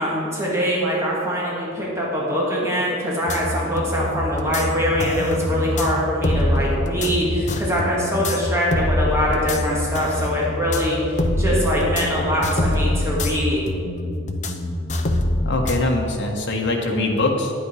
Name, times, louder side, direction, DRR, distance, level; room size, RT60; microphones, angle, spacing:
voice 1, 0.0-13.6, equal, 15° right, -5 dB, 2.2 m, -23 dB
sound 1, 3.3-15.8, left 1 dB, 35° left, 0.7 m, -24 dB
voice 2, 15.4-17.5, left 2 dB, 60° left, 1 dB, 1.4 m, -22 dB
9.8 x 8.8 x 4.9 m, 2.6 s
head